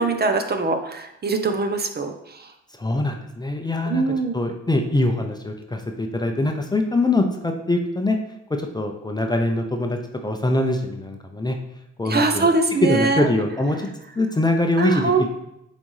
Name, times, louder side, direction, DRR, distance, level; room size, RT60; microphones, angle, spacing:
voice 1, 0.0-2.5 3.9-4.4 12.1-13.3 14.8-15.3, right 3 dB, 35° right, 6 dB, 0.7 m, -22 dB
voice 2, 2.8-8.2 8.6-11.6 12.0-12.5 12.8-13.9 14.2-15.3, left 2 dB, 15° left, 3 dB, 0.6 m, -23 dB
7.2 x 4.1 x 3.2 m, 0.85 s
cardioid pair, 90°, 30 cm